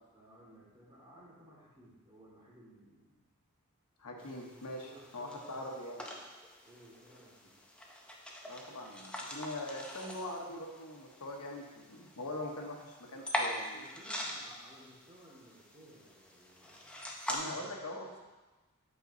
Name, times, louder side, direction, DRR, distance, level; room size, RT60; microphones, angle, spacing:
voice 1, 0.1-3.2 4.8-5.8 6.6-7.6 13.1-13.3 13.7-17.8, equal, 20° right, -6 dB, 1.8 m, -58 dB
voice 2, 4.0-4.9 5.1-6.0 8.5-13.8 17.3-18.2, left 1 dB, 90° left, 1 dB, 0.9 m, -42 dB
sound 1, 4.2-17.4, left 1 dB, 5° left, 0.5 m, -43 dB
7.8 x 5.1 x 2.6 m, 1.2 s
head